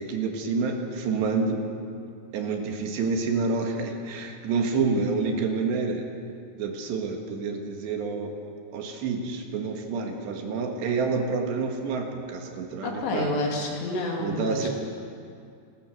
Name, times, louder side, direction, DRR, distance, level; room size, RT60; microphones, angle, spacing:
voice 1, 0.0-1.6 2.3-6.1 6.6-8.3 8.7-13.3 14.2-14.7, right 4 dB, 85° right, 3 dB, 4.0 m, -28 dB
voice 2, 12.8-14.7, left 2 dB, 80° left, -1 dB, 4.9 m, -29 dB
28.5 x 14.0 x 6.6 m, 2.4 s
omnidirectional pair, 4.8 m